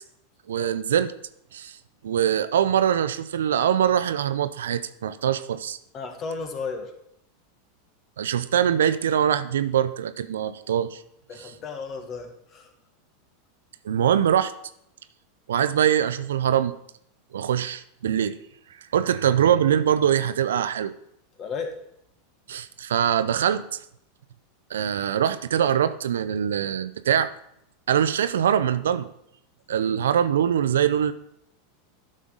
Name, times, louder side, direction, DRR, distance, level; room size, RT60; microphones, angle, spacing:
voice 1, 0.5-1.1 1.5-1.8 2.0-5.8 8.2-11.0 11.4-11.5 13.8-14.5 15.5-16.8 17.3-18.4 18.9-20.9 22.5-23.8 24.7-27.3 27.9-29.1 29.7-31.1, right 9 dB, 75° right, 13 dB, 0.5 m, -23 dB
voice 2, 5.9-6.9 11.3-12.7 19.0-19.1 21.4-21.7 29.8-30.0, left 4 dB, 35° left, 6 dB, 1.5 m, -34 dB
11.5 x 6.4 x 3.8 m, 0.74 s
hypercardioid pair, 90°, 0 cm